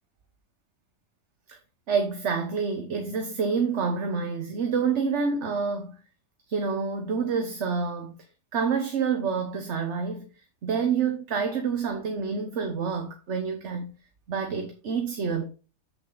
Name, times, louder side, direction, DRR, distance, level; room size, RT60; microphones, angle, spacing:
voice 1, 1.9-5.9 6.5-8.1 8.5-10.3 10.6-13.9 14.3-15.5, right 5 dB, 55° right, 1.3 m, -28 dB
7.9 x 6.9 x 3.9 m
omnidirectional pair, 1.5 m